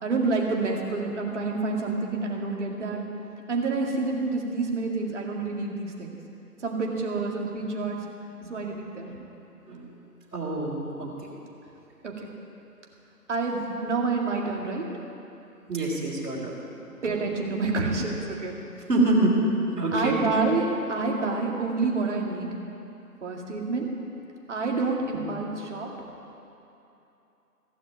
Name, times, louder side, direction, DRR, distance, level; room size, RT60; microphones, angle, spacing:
voice 1, 0.0-3.0 3.5-6.2 6.6-8.0 8.5-9.1 12.0-12.3 13.3-14.9 17.0-18.5 19.9-22.5 23.2-23.9 24.5-25.9, right 3 dB, 50° right, 0 dB, 2.1 m, -28 dB
voice 2, 10.3-11.3 15.7-16.6 18.9-19.5 19.8-20.2 25.1-25.2, right 2 dB, 70° right, -6 dB, 3.7 m, -26 dB
15.5 x 6.7 x 9.2 m, 2.9 s
figure-of-eight pair, 160°, 46 cm